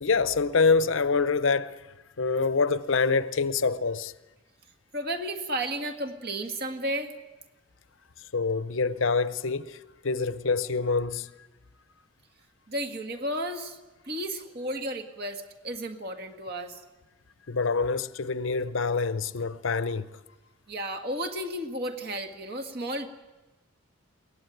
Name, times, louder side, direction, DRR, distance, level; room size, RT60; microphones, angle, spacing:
voice 1, 0.0-1.8 2.2-4.1 8.3-11.3 17.5-20.1, left 4 dB, 65° left, 0.7 m, -26 dB
voice 2, 4.9-7.1 12.7-13.8 14.0-16.8 20.7-23.1, right 1 dB, 45° right, 1.9 m, -33 dB
22.5 x 18.0 x 9.2 m
head